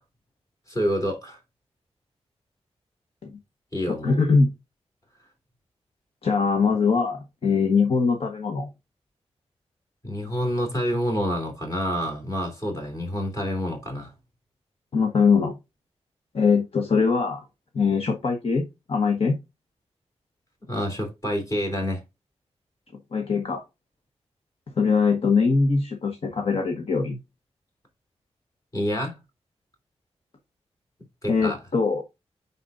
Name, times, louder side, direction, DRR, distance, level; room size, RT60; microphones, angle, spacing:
voice 1, 0.7-1.4 3.7-4.2 10.0-14.1 20.7-22.0 28.7-29.2 31.2-31.6, equal, 30° left, 3.1 m, -28 dB
voice 2, 3.9-4.5 6.2-8.7 14.9-15.6 16.3-17.4 17.7-19.4 23.1-23.6 24.8-27.2 31.3-32.0, left 5 dB, 60° left, 1.2 m, -22 dB
9.5 x 4.2 x 2.5 m
wide cardioid pair, 80°, 11 cm